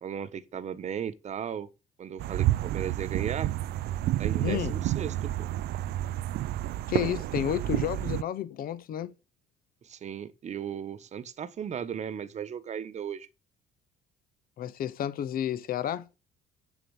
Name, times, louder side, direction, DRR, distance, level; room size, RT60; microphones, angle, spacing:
voice 1, 0.0-1.7 2.0-3.5 4.2-5.5 9.8-13.3, right 8 dB, 45° right, 1.2 m, -36 dB
sound 1, 2.2-8.2, right 14 dB, 70° right, 0.5 m, -30 dB
voice 2, 4.4-4.8 6.9-9.1 14.6-16.1, left 10 dB, 60° left, 1.0 m, -31 dB
8.3 x 7.3 x 7.1 m
cardioid pair, 110°, 17 cm